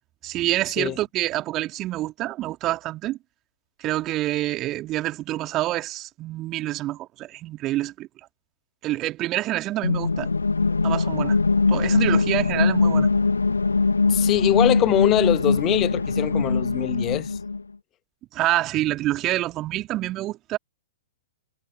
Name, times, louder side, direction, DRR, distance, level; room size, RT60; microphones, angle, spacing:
voice 1, 0.2-3.2 3.8-8.1 8.8-10.3 10.8-11.4 11.7-13.1 18.3-20.6, right 16 dB, 30° right, 2.6 m, -27 dB
sound 1, 9.8-17.6, left 4 dB, 75° left, 0.7 m, -22 dB
voice 2, 14.1-17.4, left 14 dB, 25° left, 1.5 m, -23 dB
figure-of-eight pair, 110°, 0 cm